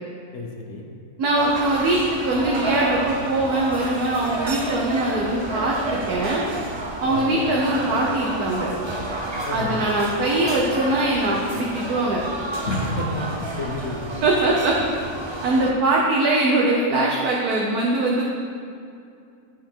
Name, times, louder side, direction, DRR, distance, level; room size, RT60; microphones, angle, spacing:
voice 1, 0.3-0.8 7.1-7.5 9.5-9.8 12.7-14.1, left 2 dB, 55° left, 0 dB, 1.2 m, -30 dB
voice 2, 1.2-6.4 7.0-8.7 9.5-12.2 14.2-14.7 15.4-18.3, right 2 dB, 90° right, -3 dB, 1.4 m, -22 dB
sound 1, 1.4-15.7, right 2 dB, 35° right, 0.4 m, -30 dB
11.0 x 4.5 x 4.5 m, 2.5 s
omnidirectional pair, 1.6 m